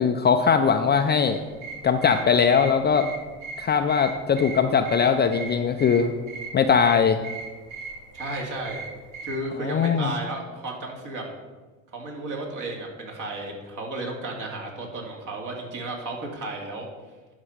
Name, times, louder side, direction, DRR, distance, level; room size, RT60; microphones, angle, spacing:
voice 1, 0.0-1.4 1.8-3.1 3.6-6.1 6.5-7.2 9.6-10.1, left 6 dB, 25° left, 7 dB, 0.5 m, -20 dB
sound 1, 1.3-9.5, right 4 dB, 85° right, 1.9 m, -39 dB
voice 2, 8.1-8.8 9.2-11.4 11.9-16.9, right 2 dB, 50° right, 0 dB, 2.7 m, -33 dB
11.0 x 4.4 x 5.0 m, 1.3 s
hypercardioid pair, 85°, 41 cm